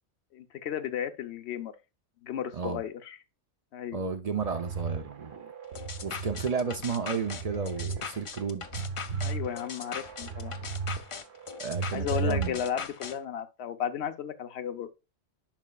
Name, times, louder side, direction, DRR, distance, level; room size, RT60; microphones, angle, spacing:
voice 1, 0.3-1.7 2.2-3.2 3.7-4.0 9.2-10.6 11.9-14.9, left 9 dB, 70° left, 1.0 m, -34 dB
voice 2, 3.9-5.5 6.0-8.7 11.6-12.6, right 5 dB, 40° right, 0.6 m, -32 dB
sound 1, 4.4-6.5 6.9-8.0 8.4-11.0 11.3-12.8, right 5 dB, 70° right, 1.1 m, -35 dB
sound 2, 5.8-13.2, left 6 dB, 55° left, 0.3 m, -40 dB
10.5 x 5.3 x 2.3 m
omnidirectional pair, 1.2 m